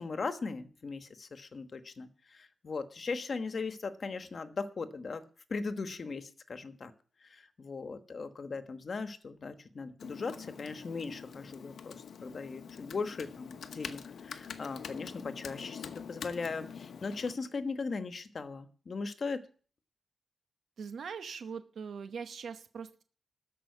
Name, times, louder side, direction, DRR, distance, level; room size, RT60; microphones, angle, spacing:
voice 1, 0.0-5.2 5.5-6.9 7.2-19.5, left 4 dB, 50° left, 9 dB, 1.2 m, -38 dB
Computer keyboard, 10.0-17.3, left 7 dB, 80° left, 0.9 m, -45 dB
voice 2, 20.8-23.0, right 6 dB, 75° right, 9 dB, 0.9 m, -41 dB
13.5 x 5.5 x 8.3 m, 0.42 s
wide cardioid pair, 120°, 0 cm